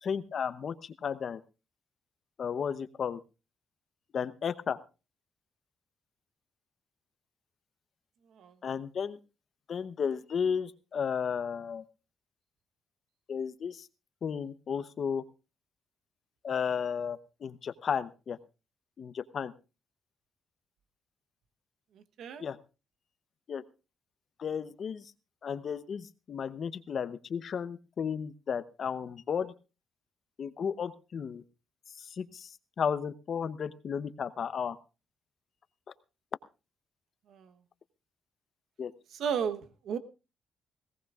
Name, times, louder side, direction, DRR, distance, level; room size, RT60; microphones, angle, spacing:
voice 1, 0.0-1.4 2.4-3.2 4.1-4.8 8.6-9.2 9.7-11.8 13.3-13.9 14.2-15.2 16.4-18.4 19.0-19.5 22.4-22.6 23.5-23.6 24.4-25.1 25.4-29.5 30.4-31.4 32.0-34.8 38.8-38.9, left 7 dB, 55° left, 13 dB, 0.8 m, -34 dB
voice 2, 21.9-22.4 37.3-37.5 39.1-40.0, right 7 dB, 75° right, 10 dB, 1.1 m, -34 dB
19.0 x 17.5 x 2.4 m, 0.31 s
cardioid pair, 100°, 0 cm